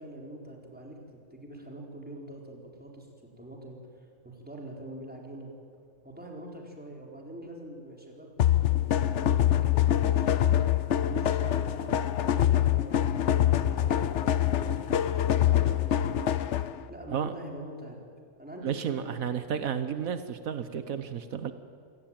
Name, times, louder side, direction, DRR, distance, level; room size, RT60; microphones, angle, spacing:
voice 1, 0.0-3.1 3.4-5.5 6.0-10.6 11.1-16.3 16.9-18.0 18.4-19.4, right 1 dB, 5° right, -1 dB, 4.2 m, -44 dB
sound 1, 8.4-16.8, left 11 dB, 60° left, 1.0 m, -25 dB
voice 2, 18.6-21.5, right 8 dB, 80° right, 11 dB, 1.4 m, -32 dB
27.5 x 17.5 x 9.0 m, 2.4 s
omnidirectional pair, 1.4 m